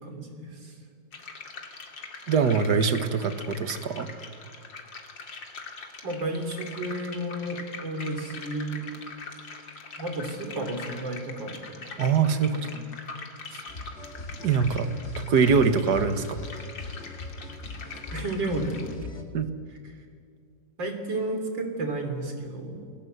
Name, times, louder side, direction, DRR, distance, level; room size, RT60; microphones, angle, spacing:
voice 1, 0.0-0.7 6.0-8.8 10.0-11.7 12.5-12.6 18.1-18.9 20.8-22.9, right 1 dB, 85° right, 5 dB, 4.1 m, -32 dB
sound 1, 1.1-18.9, left 4 dB, 85° left, 3.1 m, -43 dB
voice 2, 2.3-4.1 12.0-12.7 14.4-14.9 15.2-16.4 19.3-19.5, right 5 dB, 60° right, 10 dB, 1.9 m, -23 dB
sound 2, 13.7-19.2, left 2 dB, 35° left, 2.5 m, -40 dB
28.0 x 20.0 x 8.1 m, 2.2 s
omnidirectional pair, 2.0 m